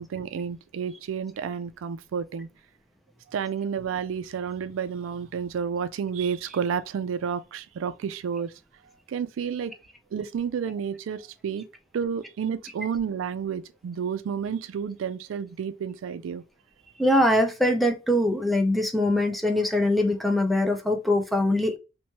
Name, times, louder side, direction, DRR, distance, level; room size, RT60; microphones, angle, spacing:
voice 1, 0.0-2.5 3.3-8.5 9.1-9.7 10.1-11.6 11.9-16.4, right 7 dB, 85° right, 0.3 m, -30 dB
voice 2, 17.0-21.8, left 1 dB, ahead, 0.4 m, -22 dB
3.0 x 2.2 x 2.8 m
head